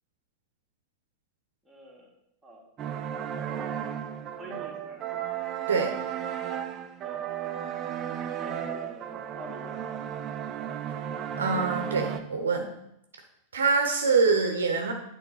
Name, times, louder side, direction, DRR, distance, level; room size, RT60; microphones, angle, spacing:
voice 1, 1.7-2.1 2.4-2.6 4.4-5.3 7.0-7.7 8.4-10.0, equal, 5° right, -3 dB, 2.0 m, -46 dB
sound 1, 2.8-12.2, right 9 dB, 30° right, 0.6 m, -34 dB
voice 2, 11.4-12.7 13.5-14.9, right 4 dB, 70° right, 3 dB, 0.9 m, -25 dB
8.9 x 3.6 x 5.6 m, 0.80 s
figure-of-eight pair, 90°, 0 cm